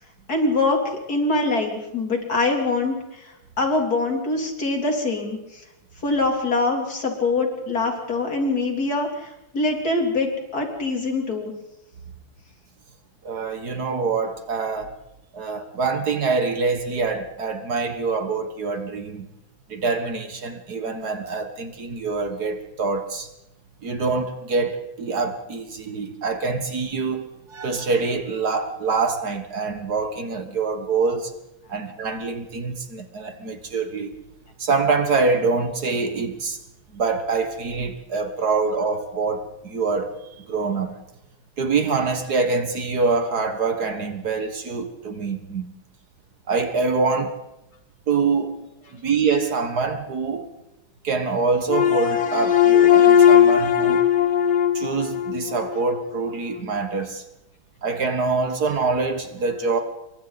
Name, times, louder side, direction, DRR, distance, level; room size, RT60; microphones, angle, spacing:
voice 1, 0.3-0.8 1.1-5.6 6.0-11.5, left 3 dB, 50° left, 3.7 m, -24 dB
voice 2, 13.2-14.9 15.3-19.3 19.7-23.3 23.8-31.3 31.7-34.2 34.6-36.6 36.9-40.9 41.6-45.7 46.5-47.4 48.1-48.6 48.9-50.5 51.0-54.1 54.7-57.2 57.8-59.8, right 4 dB, 55° right, 1.8 m, -25 dB
sound 1, 51.7-56.0, left 9 dB, 80° left, 2.2 m, -17 dB
28.0 x 23.0 x 4.1 m
omnidirectional pair, 2.1 m